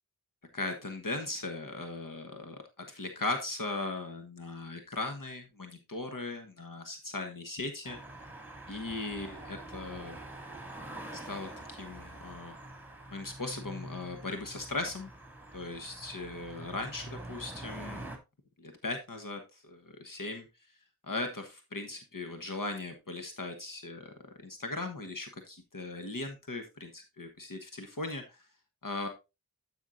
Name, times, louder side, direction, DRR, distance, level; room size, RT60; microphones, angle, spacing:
voice 1, 0.5-8.0 8.7-10.2 11.1-12.5 13.1-15.1 15.5-18.1 18.6-20.7 21.0-24.1 24.4-28.4 28.8-29.1, left 2 dB, 65° left, 5 dB, 1.3 m, -38 dB
sound 1, 7.8-18.2, right 1 dB, 5° right, 2.4 m, -45 dB
12.5 x 5.7 x 2.6 m, 0.25 s
wide cardioid pair, 40°, 35 cm